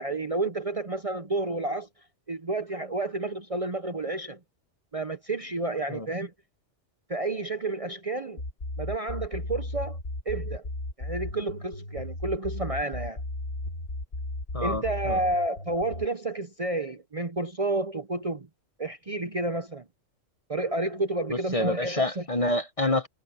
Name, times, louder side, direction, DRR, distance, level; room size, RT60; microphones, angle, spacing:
voice 1, 0.0-1.9 2.3-4.4 4.9-6.3 7.1-8.4 8.8-10.0 10.3-10.6 11.0-13.2 14.6-18.5 18.8-19.8 20.5-22.3, right 2 dB, 30° right, 0.8 m, -30 dB
sound 1, 8.4-16.1, left 2 dB, 55° left, 2.1 m, -35 dB
voice 2, 14.5-15.2 21.5-23.1, left 2 dB, 30° left, 1.0 m, -27 dB
omnidirectional pair, 1.3 m